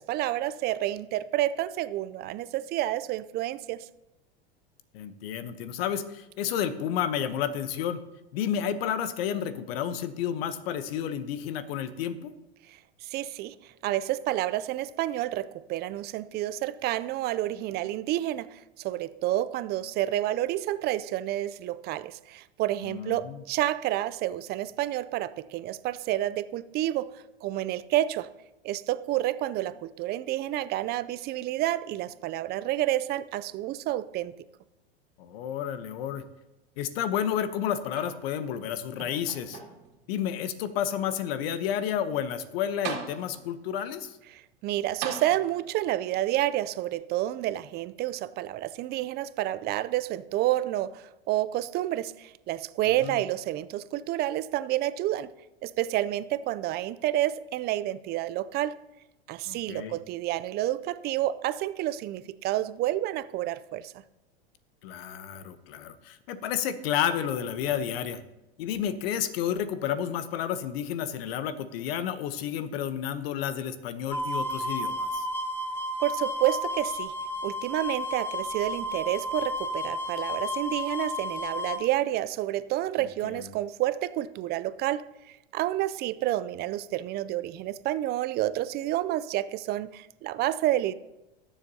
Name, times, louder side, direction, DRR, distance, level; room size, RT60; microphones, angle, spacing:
voice 1, 0.0-3.9 12.7-13.6 13.8-28.3 28.6-34.3 44.3-55.3 55.6-58.8 59.3-63.9 76.0-77.1 77.4-90.9, right 14 dB, 30° right, 15 dB, 0.4 m, -29 dB
voice 2, 4.9-8.0 8.3-12.3 22.8-23.4 35.2-36.2 36.8-39.6 40.1-44.2 53.0-53.2 59.5-59.9 64.8-68.2 68.6-75.3 83.2-83.6, left 9 dB, 65° left, 13 dB, 0.9 m, -31 dB
sound 1, 37.9-38.6 39.0-40.0 40.7-40.8 42.4-42.5 42.8-43.6 45.0-45.9 46.9-47.0, right 7 dB, 55° right, 2.3 m, -39 dB
sound 2, 74.1-81.8, left 1 dB, 5° left, 1.1 m, -32 dB
19.0 x 7.2 x 2.8 m, 0.96 s
hypercardioid pair, 105°, 32 cm